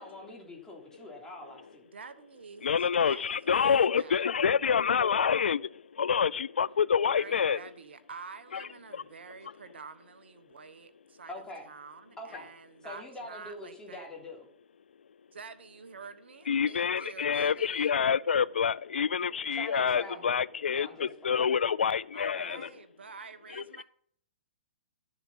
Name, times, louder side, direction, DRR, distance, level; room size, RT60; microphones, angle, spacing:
voice 1, 0.0-1.8 11.3-11.6 12.2-12.5 12.8-14.5 19.5-20.4 20.7-21.5 22.3-22.6, left 1 dB, 10° left, 3.3 m, -44 dB
voice 2, 1.9-4.2 7.2-14.1 15.3-17.9 22.1-23.8, right 5 dB, 85° right, 1.2 m, -48 dB
voice 3, 2.6-7.6 8.5-8.7 8.9-9.0 16.5-22.7 23.5-23.6, left 7 dB, 90° left, 0.4 m, -27 dB
12.0 x 6.9 x 5.6 m
hypercardioid pair, 130°, 6 cm